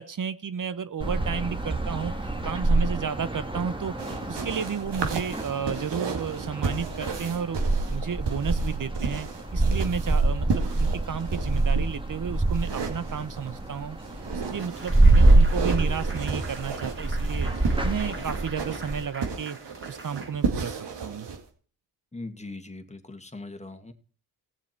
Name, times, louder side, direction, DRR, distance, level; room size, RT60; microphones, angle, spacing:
voice 1, 0.0-2.1 2.4-3.9 4.3-7.6 7.9-14.0 14.3-19.6 19.9-21.3, right 7 dB, 50° right, 14 dB, 0.9 m, -32 dB
sound 1, 1.0-19.0, right 2 dB, 10° right, 2.0 m, -25 dB
sound 2, 4.0-11.8 12.5-13.6 14.0-21.4, right 5 dB, 75° right, 2.3 m, -33 dB
sound 3, 14.6-21.0, right 2 dB, 30° right, 3.0 m, -45 dB
voice 2, 22.1-23.9, left 2 dB, 15° left, 8 dB, 2.0 m, -40 dB
17.5 x 7.2 x 4.5 m, 0.42 s
supercardioid pair, 50°, 42 cm